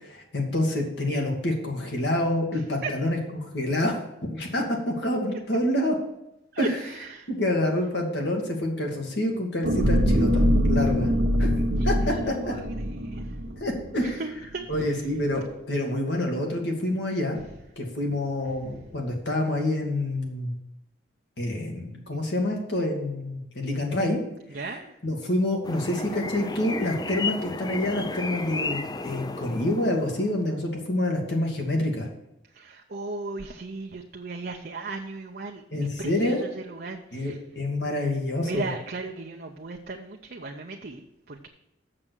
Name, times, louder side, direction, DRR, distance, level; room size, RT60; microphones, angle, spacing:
voice 1, 0.0-4.0 4.3-6.0 6.6-6.8 7.3-11.1 11.4-11.5 11.8-12.5 13.6-14.2 14.7-17.4 17.8-20.5 21.4-24.2 25.0-32.1 35.7-36.4 37.1-38.7, left 1 dB, 65° left, 1 dB, 2.0 m, -27 dB
voice 2, 6.5-7.3 11.6-12.7 13.0-13.4 14.0-15.0 24.5-24.9 32.5-35.6 36.0-37.4 38.4-41.5, right 3 dB, 50° right, 2 dB, 0.7 m, -36 dB
sound 1, 9.6-14.1 14.6-14.8, equal, 85° right, 1.0 m, -24 dB
sound 2, 25.6-30.5, left 3 dB, 20° left, 0.5 m, -33 dB
7.5 x 6.8 x 6.2 m, 0.88 s
head